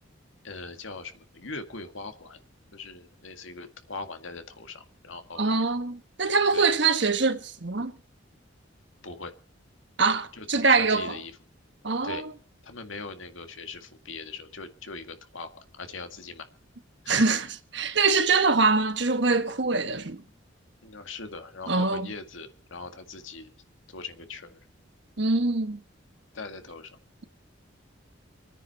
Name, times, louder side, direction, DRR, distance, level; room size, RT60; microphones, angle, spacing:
voice 1, 0.4-2.4 2.7-5.5 6.5-6.7 9.0-9.4 10.3-11.3 12.0-12.2 12.6-16.5 17.0-17.2 20.8-23.5 23.9-24.6 26.3-26.9, left 3 dB, 80° left, 2.0 m, -40 dB
voice 2, 5.4-7.9 10.0-11.2 11.8-12.2 17.1-17.5 17.7-20.2 21.7-22.1 25.2-25.8, right 4 dB, 60° right, 1.4 m, -24 dB
27.5 x 9.7 x 4.4 m
head